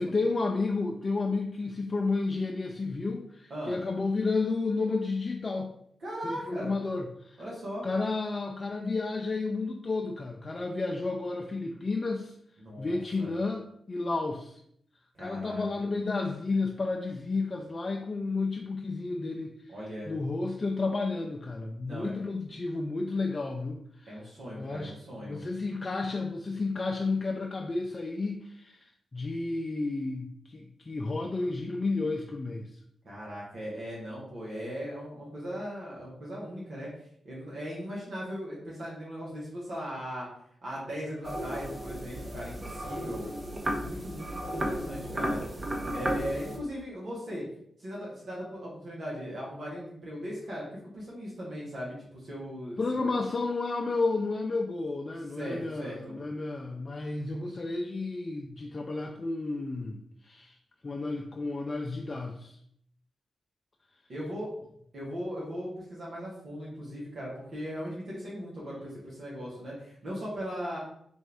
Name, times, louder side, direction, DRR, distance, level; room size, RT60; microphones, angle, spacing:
voice 1, 0.0-5.7 6.2-7.4 7.8-12.3 12.8-14.6 15.2-19.7 20.1-24.2 24.6-25.0 25.2-32.8 52.8-60.6 60.8-62.6, left 3 dB, 45° left, 1 dB, 0.4 m, -32 dB
voice 2, 6.0-6.7 7.4-7.9 12.6-13.3 15.1-15.6 19.7-20.1 21.8-22.1 24.1-25.4 33.0-36.9 37.2-40.3 40.6-43.3 43.8-45.4 45.9-47.4 47.8-52.8 55.4-56.2 64.1-64.5 64.9-70.8, equal, 65° right, -6 dB, 1.3 m, -38 dB
sound 1, 41.2-46.6, equal, 40° right, 0.9 m, -34 dB
4.2 x 2.6 x 3.4 m, 0.69 s
supercardioid pair, 45°, 0 cm